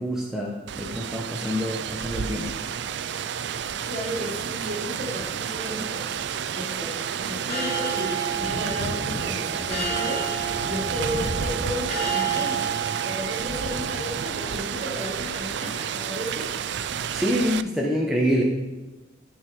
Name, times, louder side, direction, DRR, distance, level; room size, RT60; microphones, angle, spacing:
voice 1, 0.0-2.6 17.1-18.4, equal, ahead, -3 dB, 1.0 m, -26 dB
Rain, 0.7-17.6, right 8 dB, 65° right, 0.4 m, -31 dB
Thunder / Rain, 1.8-17.5, left 1 dB, 75° left, 1.0 m, -41 dB
voice 2, 3.9-6.1 6.5-10.3 10.6-12.7 13.0-16.5, equal, 40° right, -2 dB, 2.8 m, -33 dB
sound 1, 5.5-14.6, right 6 dB, 35° left, 2.5 m, -32 dB
13.5 x 4.8 x 4.7 m, 1.1 s
head